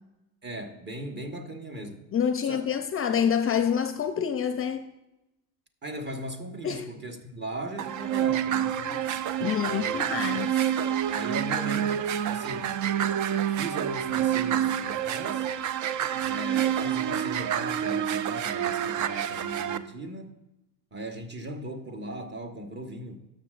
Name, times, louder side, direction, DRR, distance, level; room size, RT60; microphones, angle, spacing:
voice 1, 0.4-2.0 2.4-2.6 5.8-8.8 9.5-10.1 11.1-12.7 13.5-15.5 16.2-20.4 20.9-23.3, right 1 dB, 30° right, 1.3 m, -38 dB
voice 2, 2.1-4.9 6.6-6.9 8.8-10.6, left 8 dB, 35° left, 0.5 m, -27 dB
sound 1, 7.8-19.8, right 10 dB, 50° right, 0.5 m, -28 dB
13.0 x 6.6 x 2.5 m
supercardioid pair, 85°, 38 cm